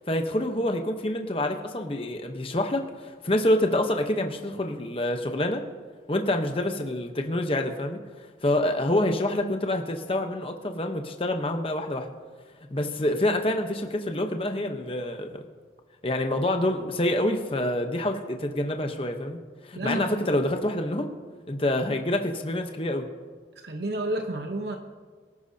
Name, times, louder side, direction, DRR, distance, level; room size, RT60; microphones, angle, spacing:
voice 1, 0.1-5.6 6.1-8.0 8.4-12.1 12.7-15.4 16.0-19.4 19.6-21.1 21.5-23.1, left 1 dB, 30° left, 4 dB, 1.0 m, -27 dB
voice 2, 19.8-20.3 23.6-24.8, right 1 dB, 70° right, 4 dB, 1.0 m, -30 dB
24.0 x 11.5 x 2.8 m, 1.5 s
head